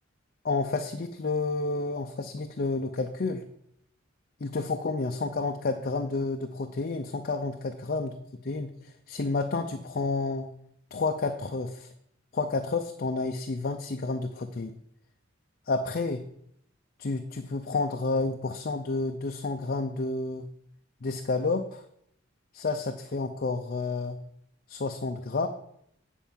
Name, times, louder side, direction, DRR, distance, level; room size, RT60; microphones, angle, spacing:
voice 1, 0.4-3.4 4.4-8.1 8.4-10.5 10.9-11.9 12.3-14.8 15.7-16.2 17.0-20.5 21.0-21.8 22.5-24.2 24.7-25.5, left 3 dB, 50° left, 5 dB, 0.5 m, -30 dB
9.0 x 4.6 x 7.1 m, 0.74 s
head